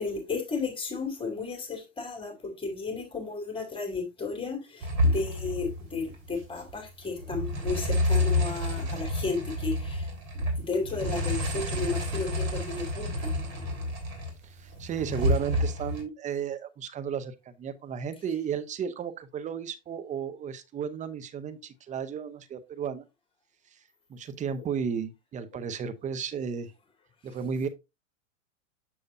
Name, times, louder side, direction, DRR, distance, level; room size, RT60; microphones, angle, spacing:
voice 1, 0.0-10.1 10.3-13.4, left 4 dB, 15° left, 2.4 m, -34 dB
sound 1, 4.8-6.4 6.7-6.9 7.2-14.3 14.7-16.0, left 1 dB, 45° right, 3.3 m, -29 dB
voice 2, 14.4-23.0 24.1-26.7 27.2-27.7, right 7 dB, 20° right, 0.7 m, -34 dB
7.1 x 6.5 x 2.6 m
hypercardioid pair, 105°, 39 cm